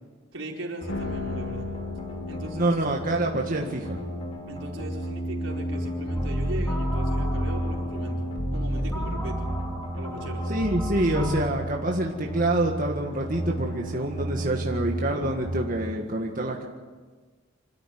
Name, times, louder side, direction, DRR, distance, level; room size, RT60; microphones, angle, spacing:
voice 1, 0.3-1.7 2.3-2.9 4.5-9.5 9.9-10.4, right 1 dB, 90° right, -1 dB, 4.9 m, -38 dB
sound 1, 0.8-15.8, right 1 dB, 30° left, 3.5 m, -34 dB
sound 2, 0.9-13.2, left 2 dB, 80° left, 2.0 m, -39 dB
voice 2, 2.5-4.0 10.5-16.7, right 2 dB, 45° right, 0 dB, 1.8 m, -26 dB
sound 3, 6.1-11.4, equal, 15° left, 5.5 m, -30 dB
26.5 x 14.0 x 9.4 m, 1.4 s
head